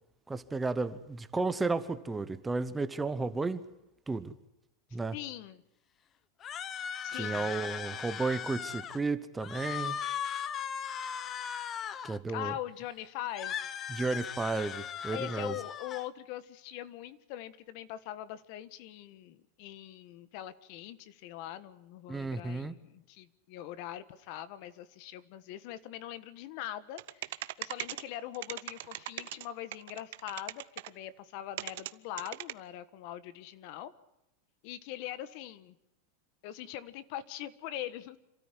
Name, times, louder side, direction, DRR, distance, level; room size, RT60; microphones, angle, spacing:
voice 1, 0.3-3.6 4.1-4.3 4.9-5.1 7.1-10.0 12.0-12.5 13.9-15.5 22.1-22.7, right 3 dB, 10° right, 12 dB, 0.9 m, -33 dB
voice 2, 5.1-5.6 7.0-7.5 12.3-13.7 15.1-33.9 34.6-35.7 36.4-38.2, left 12 dB, 50° left, 15 dB, 1.4 m, -42 dB
sound 1, 6.4-9.0 9.4-12.2 13.3-16.0, left 8 dB, 25° left, 0.9 m, -38 dB
sound 2, 27.0-28.0 28.3-29.4 29.7-30.9 31.6-31.9 32.2-32.5, right 16 dB, 65° right, 0.9 m, -38 dB
27.5 x 13.5 x 9.8 m, 0.89 s
supercardioid pair, 155°, 0 cm